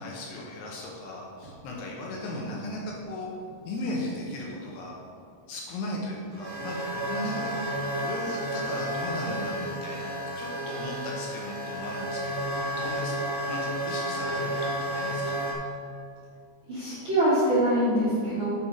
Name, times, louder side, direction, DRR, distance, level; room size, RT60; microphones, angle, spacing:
voice 1, 0.0-3.3 3.6-5.0 5.5-15.5, left 1 dB, 75° left, -2 dB, 2.7 m, -37 dB
sound 1, 1.4-1.5 2.8-2.9 3.5-3.6 4.6-4.7 6.3-15.5, right 1 dB, 80° right, 1.4 m, -32 dB
voice 2, 16.7-18.5, right 1 dB, 45° right, -11 dB, 1.7 m, -24 dB
7.4 x 5.9 x 5.0 m, 2.3 s
omnidirectional pair, 5.3 m